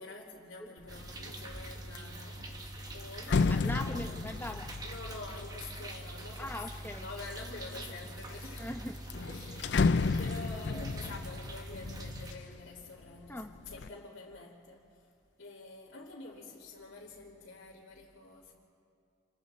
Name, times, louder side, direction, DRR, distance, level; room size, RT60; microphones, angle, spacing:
voice 1, 0.0-4.0 4.8-8.8 9.2-15.0 15.4-18.5, left 3 dB, 80° left, -7 dB, 2.6 m, -47 dB
sound 1, 0.9-1.2 1.6-6.9 7.6-8.2 8.6-8.7 9.0-12.9 13.3-13.9, left 4 dB, 60° left, 0.4 m, -33 dB
sound 2, 0.9-12.3, right 1 dB, 20° right, 1.2 m, -44 dB
voice 2, 3.6-4.7 6.4-7.1 8.6-9.2 13.3-13.5, left 1 dB, 10° left, 4 dB, 0.8 m, -40 dB
28.5 x 22.0 x 4.3 m, 2.4 s
head